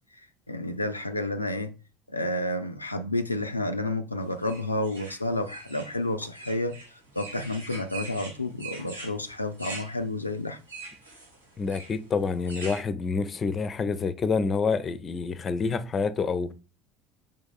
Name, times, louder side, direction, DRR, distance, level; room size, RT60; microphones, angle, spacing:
voice 1, 0.1-1.7 2.1-6.8 7.1-10.6, left 1 dB, 85° left, 0.4 m, -30 dB
sound 1, 4.4-12.8, right 3 dB, 85° right, 1.7 m, -43 dB
voice 2, 11.6-16.5, left 5 dB, 30° left, 0.6 m, -27 dB
5.2 x 3.6 x 5.3 m
figure-of-eight pair, 65°, 0 cm